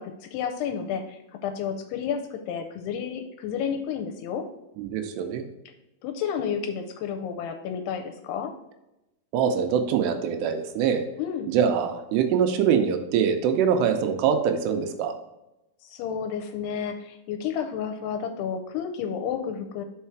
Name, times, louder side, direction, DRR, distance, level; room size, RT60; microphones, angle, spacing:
voice 1, 0.0-4.4 6.0-8.5 11.2-11.5 15.8-19.8, left 7 dB, 80° left, 5 dB, 2.5 m, -31 dB
voice 2, 4.8-5.5 9.3-11.1 11.5-15.1, right 7 dB, 80° right, 6 dB, 2.7 m, -24 dB
5.6 x 4.8 x 4.5 m, 0.93 s
omnidirectional pair, 5.0 m